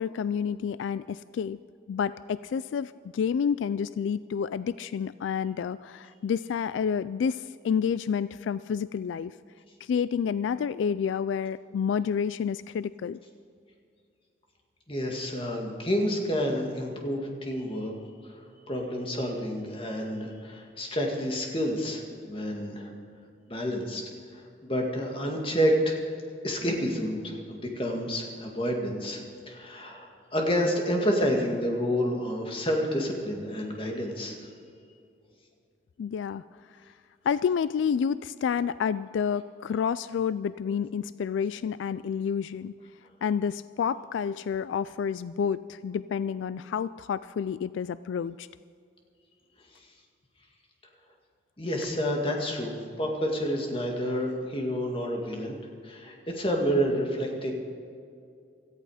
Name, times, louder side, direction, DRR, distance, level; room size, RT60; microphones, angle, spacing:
voice 1, 0.0-1.6 1.9-9.3 9.8-13.2 36.0-36.4 37.2-42.7 43.2-48.5, left 7 dB, 85° left, 16 dB, 0.3 m, -29 dB
voice 2, 14.9-17.9 18.2-18.3 18.7-22.9 23.5-24.0 24.3-26.0 26.4-34.5 51.6-55.6 55.8-57.5, equal, 30° left, 1 dB, 2.1 m, -29 dB
17.5 x 14.0 x 5.0 m, 2.4 s
head